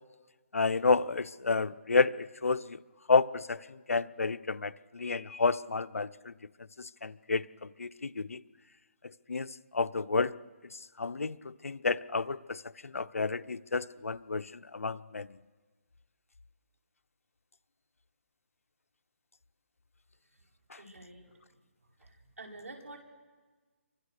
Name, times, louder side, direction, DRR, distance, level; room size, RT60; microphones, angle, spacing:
voice 1, 0.5-2.8 3.1-6.3 6.8-8.4 9.3-10.3 11.0-15.3, left 4 dB, 90° left, 13 dB, 0.8 m, -30 dB
voice 2, 20.8-21.4 22.0-23.0, right 2 dB, 80° right, 1 dB, 5.5 m, -49 dB
29.0 x 24.5 x 6.7 m, 1.4 s
hypercardioid pair, 165°, 7 cm